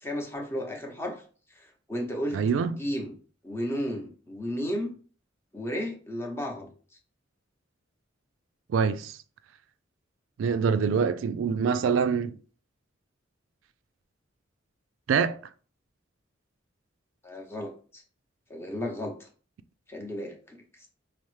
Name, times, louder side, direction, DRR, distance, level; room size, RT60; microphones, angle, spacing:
voice 1, 0.0-1.2 1.6-2.4 2.7-3.1 3.4-4.9 5.5-6.7 17.2-18.0 18.5-19.3 19.9-20.6, equal, 15° left, 0.7 m, -33 dB
voice 2, 2.3-2.7 8.7-9.2 10.4-12.4 15.1-15.4, right 6 dB, 85° right, 0.3 m, -25 dB
5.4 x 2.0 x 3.1 m
head